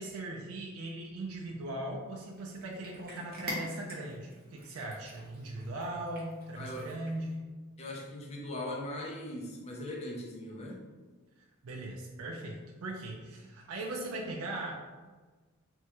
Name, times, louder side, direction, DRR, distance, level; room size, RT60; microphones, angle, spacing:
voice 1, 0.0-7.5 11.6-14.8, right 1 dB, 75° right, -1 dB, 0.4 m, -39 dB
Cat, 2.1-7.4, equal, 45° right, 0.9 m, -46 dB
voice 2, 6.6-6.9 7.8-10.8, left 1 dB, 30° left, -2 dB, 0.4 m, -40 dB
3.5 x 2.2 x 2.9 m, 1.3 s
head